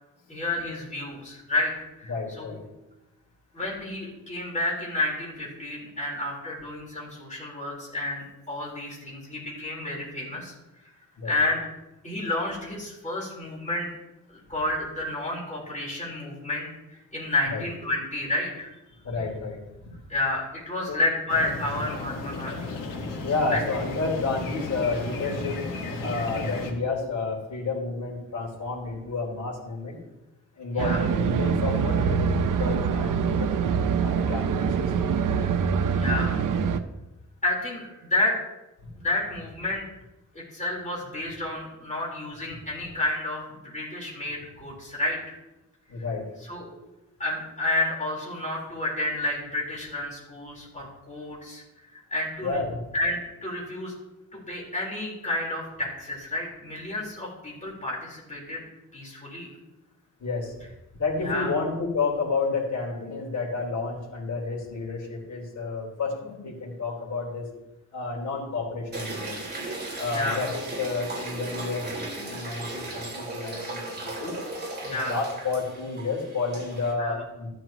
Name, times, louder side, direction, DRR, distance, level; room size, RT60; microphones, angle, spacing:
voice 1, 0.3-1.7 2.0-2.1 2.4-2.5 3.5-10.5 11.2-11.6 12.0-13.9 14.3-18.7 20.1-22.7 23.5-23.6 30.7-31.1 35.9-36.4 37.4-38.4 39.0-39.8 40.3-45.4 46.4-46.7 47.2-51.6 52.1-52.6 52.9-53.9 54.3-58.6 58.9-59.5 61.2-61.5 70.1-70.4 74.8-75.1 77.0-77.1, left 2 dB, 25° left, -4 dB, 4.2 m, -30 dB
voice 2, 2.1-2.6 11.2-11.4 17.5-17.6 19.0-19.9 20.9-21.0 23.2-25.6 26.0-30.0 30.5-35.5 45.9-46.2 52.4-52.8 60.2-60.5 61.0-67.5 67.9-69.4 70.0-74.3 74.9-77.5, left 3 dB, 65° left, -3 dB, 3.9 m, -30 dB
sound 1, 21.3-26.7, left 2 dB, 85° left, 1.8 m, -34 dB
sound 2, 30.8-36.8, right 6 dB, 80° right, 0.8 m, -24 dB
sound 3, 68.9-76.9, right 2 dB, 30° right, 2.8 m, -36 dB
13.5 x 11.5 x 3.0 m, 0.98 s
wide cardioid pair, 140°, 32 cm